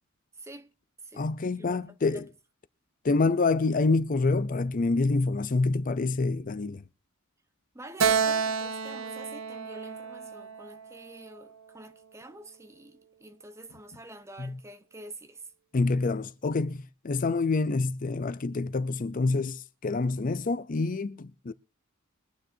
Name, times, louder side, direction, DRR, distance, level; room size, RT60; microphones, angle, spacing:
voice 1, 0.3-0.7 1.0-1.3 1.6-2.3 7.7-15.5, right 1 dB, 15° right, 0.9 m, -47 dB
voice 2, 1.1-2.2 3.0-6.8 14.4-14.6 15.7-21.5, left 3 dB, 40° left, 0.5 m, -27 dB
Keyboard (musical), 8.0-11.5, right 6 dB, 70° right, 0.7 m, -30 dB
22.5 x 9.4 x 2.7 m
head